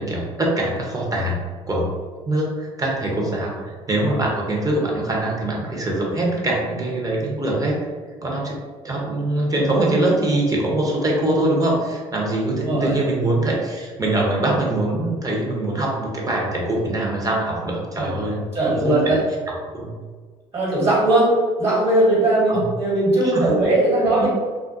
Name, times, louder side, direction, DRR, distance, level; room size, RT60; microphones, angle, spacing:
voice 1, 0.0-1.9 2.3-3.5 3.9-7.8 8.2-8.6 8.8-19.2 19.7-19.9 22.5-22.6 23.3-23.5 24.1-24.3, right 1 dB, 25° right, -2 dB, 0.8 m, -23 dB
voice 2, 12.6-13.0 18.0-18.1 18.5-19.2 20.5-21.3 21.6-24.3, right 1 dB, 45° right, -7 dB, 1.4 m, -19 dB
2.4 x 2.2 x 2.5 m, 1.5 s
hypercardioid pair, 60°, 14 cm